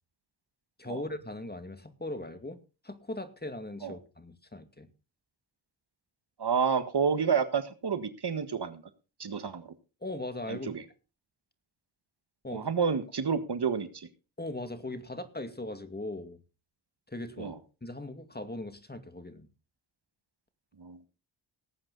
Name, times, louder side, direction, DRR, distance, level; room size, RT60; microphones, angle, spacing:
voice 1, 0.8-4.9 10.0-10.7 12.4-12.7 14.4-16.4 17.1-19.5, left 1 dB, 20° left, 9 dB, 2.3 m, -39 dB
voice 2, 6.4-8.8 9.2-9.7 10.5-10.8 12.5-14.1 17.4-17.5 20.8-21.0, right 6 dB, 55° right, 11 dB, 1.7 m, -29 dB
18.0 x 8.9 x 4.1 m, 0.33 s
cardioid pair, 40°, 47 cm